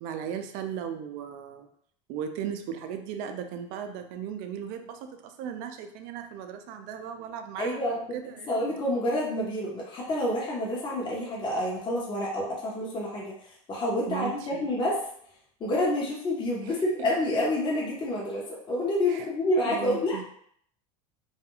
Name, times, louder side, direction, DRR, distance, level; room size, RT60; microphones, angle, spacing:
voice 1, 0.0-1.7 2.1-8.8 14.1-14.7 16.6-16.7 19.1-19.3 19.6-20.2, right 8 dB, 60° right, 6 dB, 0.4 m, -37 dB
voice 2, 7.6-8.0 8.5-13.3 13.7-15.0 15.6-20.2, left 1 dB, 25° left, -4 dB, 0.8 m, -28 dB
2.4 x 2.2 x 2.9 m, 0.65 s
supercardioid pair, 115°, 17 cm